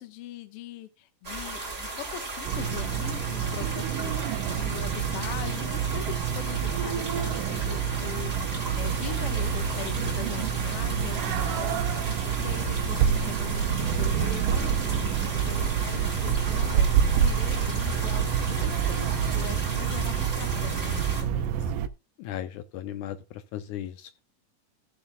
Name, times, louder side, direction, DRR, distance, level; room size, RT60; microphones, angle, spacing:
voice 1, 0.0-4.1 4.5-16.9 17.2-21.7, left 12 dB, 60° left, 1.7 m, -41 dB
sound 1, 1.2-21.2, right 3 dB, 20° right, 2.9 m, -36 dB
sound 2, 2.4-21.9, right 8 dB, 80° right, 2.3 m, -28 dB
sound 3, 8.7-19.4, right 4 dB, 60° right, 2.1 m, -36 dB
voice 2, 22.2-24.1, left 11 dB, 75° left, 2.0 m, -36 dB
16.0 x 7.3 x 2.2 m
omnidirectional pair, 3.8 m